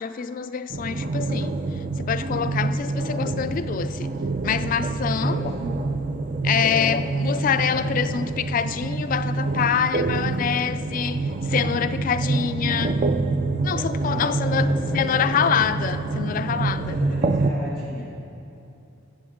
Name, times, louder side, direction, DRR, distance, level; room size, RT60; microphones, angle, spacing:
voice 1, 0.0-4.1 4.4-5.4 6.4-13.0 13.6-17.0, left 7 dB, 45° left, 0.3 m, -26 dB
sound 1, 0.7-17.5, right 3 dB, 40° right, 0.4 m, -26 dB
voice 2, 5.2-5.7 6.6-7.0 14.0-15.6 16.9-18.1, equal, 70° right, 2.2 m, -33 dB
14.5 x 7.7 x 3.6 m
head